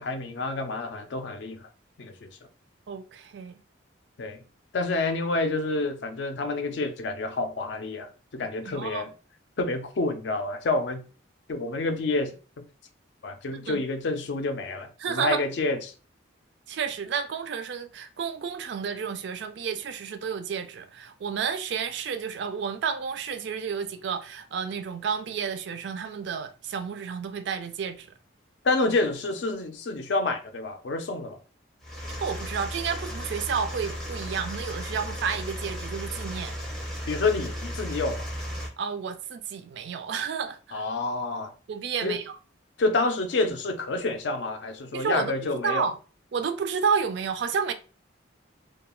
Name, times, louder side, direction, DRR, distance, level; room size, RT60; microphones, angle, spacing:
voice 1, 0.0-1.7 2.0-2.3 4.2-4.4 4.7-9.1 9.6-11.0 11.5-12.3 12.6-12.7 13.2-15.9 28.6-31.4 37.1-38.3 40.7-41.5 42.0-42.2 42.8-45.9, left 3 dB, 65° left, 0.4 m, -28 dB
voice 2, 2.9-3.5 8.7-9.0 13.5-13.8 15.0-15.4 16.7-28.1 32.2-36.6 38.8-40.8 41.7-42.4 44.9-46.0 46.3-47.7, right 6 dB, 60° right, 0.3 m, -31 dB
sound 1, 31.8-38.7, equal, ahead, 0.5 m, -35 dB
2.3 x 2.3 x 2.9 m
head